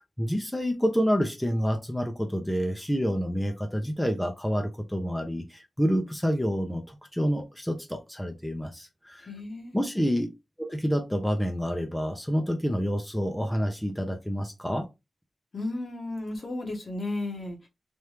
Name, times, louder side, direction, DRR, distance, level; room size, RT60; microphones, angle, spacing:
voice 1, 0.0-9.3 9.7-10.3 10.6-14.9, equal, 5° left, 0.7 m, -28 dB
voice 2, 9.2-9.8 15.5-17.7, left 2 dB, 55° left, 1.2 m, -34 dB
3.4 x 2.6 x 3.0 m
cardioid pair, 65°, 0 cm